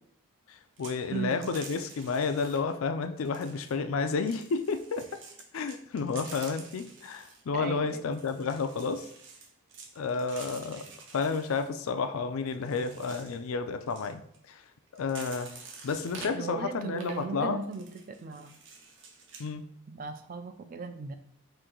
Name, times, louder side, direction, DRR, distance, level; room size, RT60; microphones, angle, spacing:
voice 1, 0.5-5.1 5.5-9.1 10.0-10.9 11.1-14.2 14.5-14.6 14.9-15.5 15.8-17.6 19.4-19.6, left 4 dB, 75° left, 9 dB, 0.4 m, -31 dB
sound 1, 0.8-1.0 1.3-2.8 3.2-3.8 4.3-7.4 8.1-11.7 12.5-13.4 13.8-14.4 14.9-16.3 16.9-17.2 17.6-19.5, right 4 dB, 55° right, 0.7 m, -48 dB
voice 2, 1.1-1.5 7.5-8.0 16.3-18.6 19.9-21.1, right 4 dB, 40° right, 8 dB, 0.3 m, -37 dB
4.3 x 2.6 x 3.8 m, 0.70 s
head